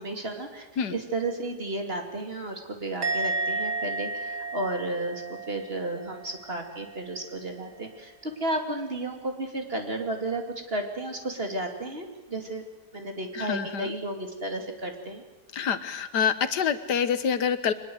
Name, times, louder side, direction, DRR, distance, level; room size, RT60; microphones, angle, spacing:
voice 1, 0.0-12.6 12.9-15.2, right 2 dB, 35° right, 4 dB, 2.8 m, -33 dB
Musical instrument, 3.0-6.4 6.7-7.1, right 2 dB, 85° right, 2.9 m, -32 dB
voice 2, 13.4-13.9 15.5-17.7, left 7 dB, 85° left, 12 dB, 1.8 m, -26 dB
24.0 x 20.0 x 7.9 m, 1.1 s
omnidirectional pair, 1.7 m